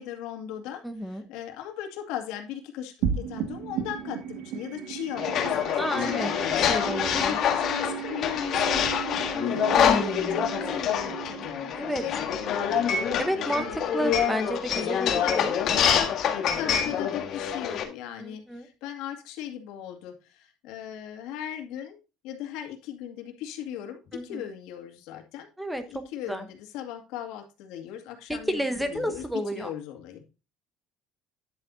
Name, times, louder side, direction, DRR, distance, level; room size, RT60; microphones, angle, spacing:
voice 1, 0.0-0.8 1.1-6.8 7.1-9.7 10.2-12.8 14.9-15.3 15.7-22.0 22.2-25.5 25.9-29.2 29.5-30.2, left 10 dB, 80° left, 4 dB, 2.2 m, -38 dB
voice 2, 0.8-1.2 5.8-6.3 6.6-7.4 9.8-10.5 11.7-12.0 13.2-15.5 18.2-18.7 24.1-24.5 25.6-26.5 28.3-29.7, equal, 5° right, 9 dB, 1.0 m, -31 dB
sound 1, 3.0-13.7, right 8 dB, 75° right, 1.9 m, -36 dB
sound 2, 5.2-17.8, left 8 dB, 45° left, 1.7 m, -26 dB
10.0 x 8.0 x 2.7 m, 0.29 s
cardioid pair, 145°, 0 cm